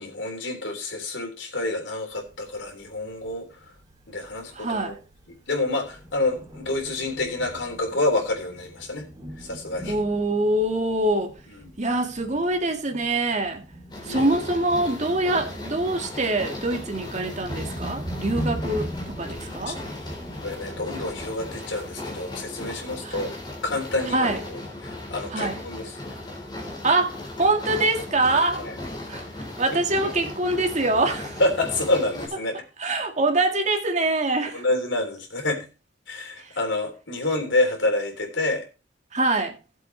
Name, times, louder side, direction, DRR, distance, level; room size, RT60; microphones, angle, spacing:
voice 1, 0.0-3.5 4.1-5.0 5.3-9.1 9.4-10.0 11.5-11.7 14.0-14.3 19.7-19.8 20.4-23.3 23.6-26.0 28.6-28.8 29.7-30.1 31.4-32.6 34.5-35.7 36.1-38.6, left 2 dB, 90° left, 3.6 m, -28 dB
Thunder, 2.1-21.5, equal, 20° right, 4.0 m, -40 dB
voice 2, 4.5-5.0 9.9-11.3 11.8-13.6 14.0-19.8 23.0-23.2 24.1-24.4 25.3-25.6 26.8-28.6 29.1-29.3 29.6-31.4 32.8-34.6 36.4-36.5 39.1-39.6, right 2 dB, 40° right, 1.9 m, -24 dB
sound 1, 13.9-32.3, left 1 dB, 25° left, 4.0 m, -37 dB
17.5 x 7.6 x 3.3 m
head